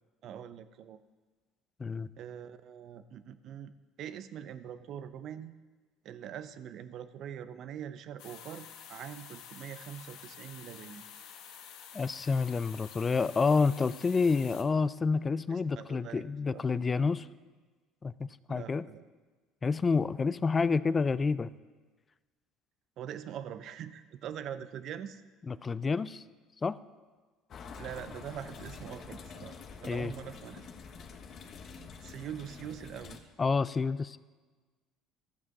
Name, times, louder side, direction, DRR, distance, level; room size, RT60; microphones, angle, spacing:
voice 1, 0.2-1.0 2.2-5.5 6.0-11.0 15.5-16.6 18.5-19.1 23.0-25.2 27.7-30.7 32.0-33.2, right 9 dB, 55° right, 12 dB, 0.7 m, -43 dB
sound 1, 8.2-14.6, left 8 dB, 75° left, 1.2 m, -49 dB
voice 2, 11.9-17.3 18.0-18.8 19.6-21.5 25.5-26.2 26.6-26.8 29.9-30.1 33.4-34.2, left 4 dB, 25° left, 17 dB, 0.4 m, -29 dB
sound 2, 27.5-33.2, left 5 dB, 45° left, 1.0 m, -47 dB
13.0 x 7.4 x 6.0 m, 1.4 s
supercardioid pair, 105°, 0 cm